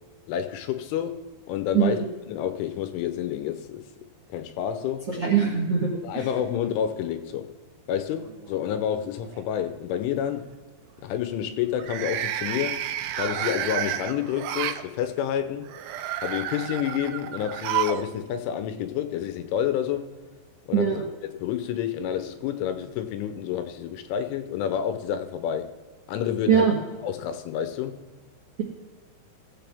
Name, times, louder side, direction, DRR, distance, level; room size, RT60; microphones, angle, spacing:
voice 1, 0.3-2.0 2.3-3.9 4.3-5.1 6.0-7.5 7.9-10.5 11.0-12.9 13.2-15.7 16.2-20.2 20.7-21.1 21.3-25.7 26.1-26.7 27.0-28.1, left 9 dB, 85° left, 3.2 m, -29 dB
voice 2, 5.1-6.2 20.7-21.0 26.5-26.8, right 7 dB, 65° right, 1.4 m, -22 dB
sound 1, 8.2-8.9 9.2-9.6 11.7-14.8 15.7-18.1 18.4-18.5 19.6-19.7, right 11 dB, 90° right, 2.3 m, -31 dB
20.0 x 7.7 x 3.5 m
omnidirectional pair, 5.5 m